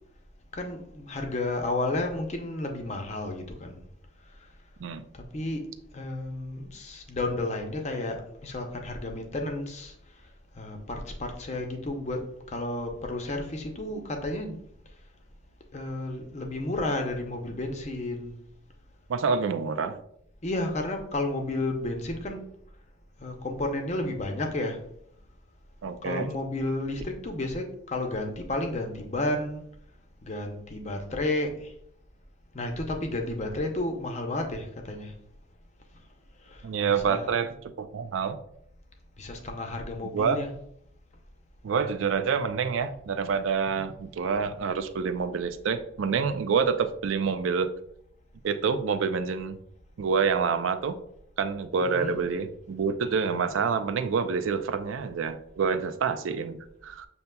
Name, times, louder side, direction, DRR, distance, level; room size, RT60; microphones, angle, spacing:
voice 1, 0.5-3.8 5.3-5.7 5.9-9.9 10.6-14.6 15.7-18.4 20.4-22.4 23.2-24.8 26.0-29.6 30.2-31.7 32.5-35.1 36.5-36.6 36.9-37.3 39.2-40.5 51.8-52.2, left 2 dB, 35° left, 3 dB, 0.6 m, -32 dB
voice 2, 19.1-20.0 25.8-26.3 36.6-38.4 40.1-40.4 41.6-47.7 48.4-49.6 50.0-51.0 51.4-57.1, right 5 dB, 85° right, 10 dB, 0.4 m, -27 dB
6.8 x 2.8 x 2.2 m, 0.71 s
head